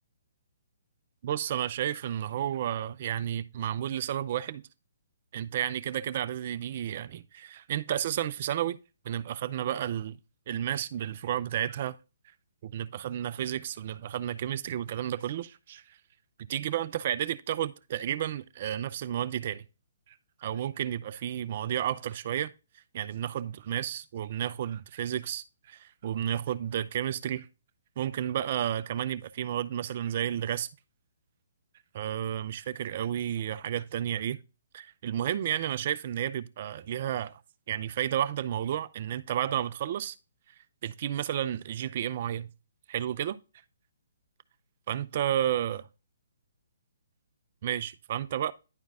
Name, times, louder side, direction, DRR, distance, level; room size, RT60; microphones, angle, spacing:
voice 1, 1.2-4.6 5.3-8.8 9.0-10.2 10.5-12.0 12.6-16.0 16.5-19.7 20.1-20.2 20.4-22.5 22.9-27.5 28.0-30.7 31.9-34.4 34.7-37.4 37.7-40.2 40.8-42.5 42.9-43.4 44.9-45.9 47.6-48.5, right 10 dB, 40° right, 0.6 m, -32 dB
10.5 x 4.5 x 3.6 m
hypercardioid pair, 160°, 0 cm